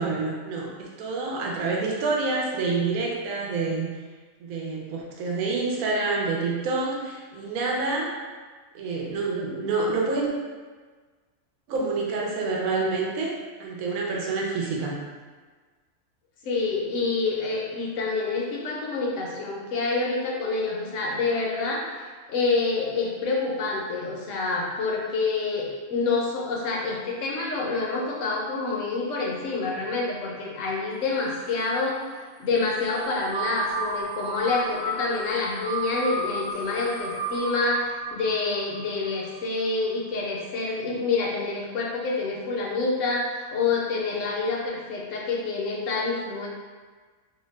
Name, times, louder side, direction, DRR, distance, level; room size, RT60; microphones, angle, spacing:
voice 1, 0.0-4.0 4.4-8.1 8.7-10.3 11.7-15.0, right 3 dB, 80° right, -2 dB, 1.0 m, -27 dB
voice 2, 16.4-21.8 22.3-46.5, left 3 dB, 70° left, -2 dB, 0.9 m, -27 dB
sound 1, 32.9-39.7, right 1 dB, 50° right, 0.9 m, -33 dB
2.7 x 2.2 x 3.1 m, 1.4 s
omnidirectional pair, 1.4 m